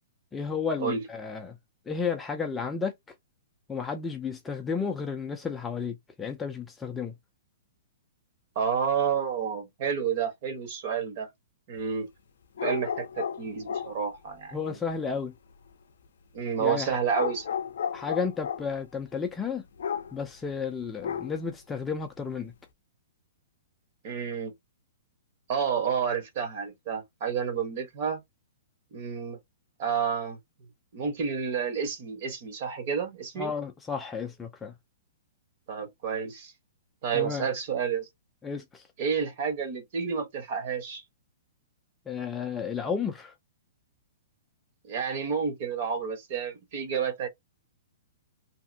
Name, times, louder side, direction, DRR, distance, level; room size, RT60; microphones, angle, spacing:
voice 1, 0.3-1.6 1.9-2.9 3.7-7.1 14.5-15.3 16.6-17.0 17.9-19.6 20.1-22.5 33.4-34.7 37.1-37.5 38.4-38.9 42.1-43.3, left 6 dB, 10° left, 0.3 m, -32 dB
voice 2, 8.5-11.3 11.7-12.1 12.6-14.8 16.3-17.6 24.0-24.5 25.5-28.2 28.9-29.4 29.8-30.4 30.9-33.5 35.7-36.5 37.0-38.1 39.0-41.0 44.8-47.3, right 7 dB, 40° right, 1.0 m, -30 dB
sound 1, 12.6-14.0 17.1-18.7 19.8-20.2 21.0-21.5, left 8 dB, 75° left, 0.4 m, -33 dB
2.8 x 2.5 x 2.5 m
hypercardioid pair, 170°, 0 cm